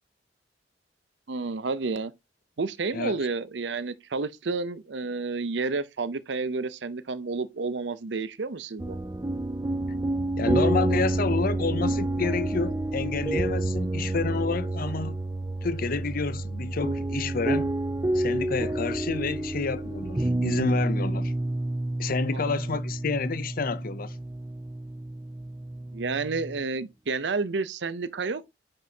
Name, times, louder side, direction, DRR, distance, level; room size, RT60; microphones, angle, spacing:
voice 1, 1.3-2.1 2.6-9.0 22.3-22.8 25.9-28.5, right 4 dB, 80° right, 0.7 m, -30 dB
sound 1, 8.8-26.6, right 1 dB, 20° right, 0.5 m, -29 dB
voice 2, 10.4-15.2 15.6-17.7 18.1-21.3 22.0-24.2, left 4 dB, 55° left, 0.6 m, -29 dB
9.3 x 5.3 x 2.8 m
head